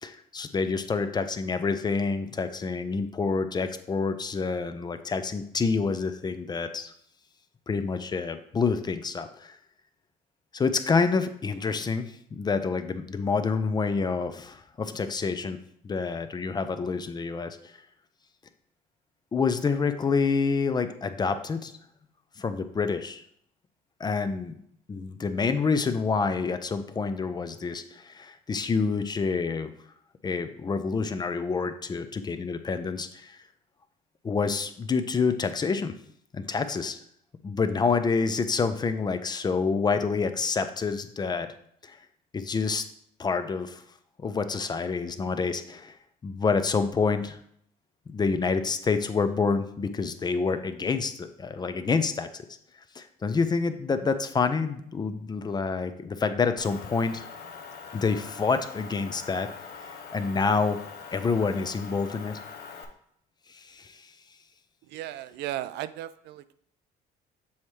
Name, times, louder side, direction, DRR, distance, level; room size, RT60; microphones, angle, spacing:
voice 1, 0.0-6.9 7.7-9.6 10.5-15.6 15.8-17.7 19.3-21.7 22.4-23.2 24.0-24.6 24.9-29.7 30.2-33.4 34.2-35.9 36.3-37.0 37.4-41.5 41.8-42.0 42.3-42.8 43.2-43.8 44.2-46.0 46.2-47.4 48.1-52.5 53.0-57.3 57.9-59.5 60.1-60.8 61.1-62.4 63.5-64.1, left 4 dB, 25° left, 10 dB, 0.5 m, -27 dB
Motor vehicle (road) / Engine, 56.6-62.9, left 5 dB, 70° left, 0.8 m, -43 dB
voice 2, 64.9-66.5, right 13 dB, 85° right, 13 dB, 0.4 m, -35 dB
7.0 x 4.3 x 3.2 m, 0.67 s
cardioid pair, 110°, 17 cm